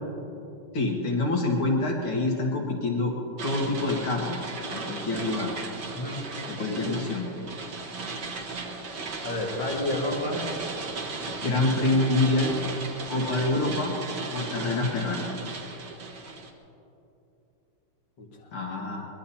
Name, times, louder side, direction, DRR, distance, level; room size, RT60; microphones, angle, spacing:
voice 1, 0.7-3.1 3.4-4.4 4.7-5.5 6.5-7.3 11.4-12.5 13.1-13.9 14.3-15.3 18.5-19.1, left 2 dB, 75° left, -1 dB, 2.8 m, -26 dB
sound 1, 3.4-16.5, right 3 dB, 55° right, 1.9 m, -36 dB
voice 2, 5.9-6.3 6.7-7.0 9.2-10.5 18.2-18.5, left 1 dB, 60° left, -2 dB, 2.6 m, -31 dB
24.0 x 21.0 x 2.9 m, 2.8 s
omnidirectional pair, 2.3 m